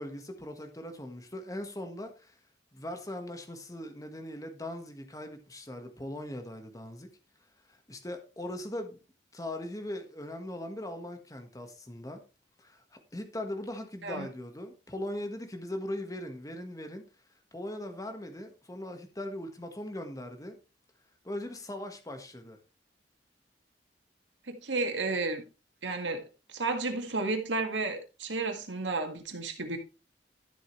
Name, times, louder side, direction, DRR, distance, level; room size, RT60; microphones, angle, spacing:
voice 1, 0.0-2.3 2.7-7.1 7.7-9.0 9.3-12.2 12.6-12.8 13.1-17.1 17.5-20.6 21.2-22.6, left 1 dB, 20° left, 5 dB, 1.5 m, -40 dB
voice 2, 24.5-25.4 25.8-26.2 26.5-29.8, right 3 dB, 85° right, 5 dB, 1.9 m, -32 dB
12.5 x 7.5 x 3.2 m, 0.31 s
head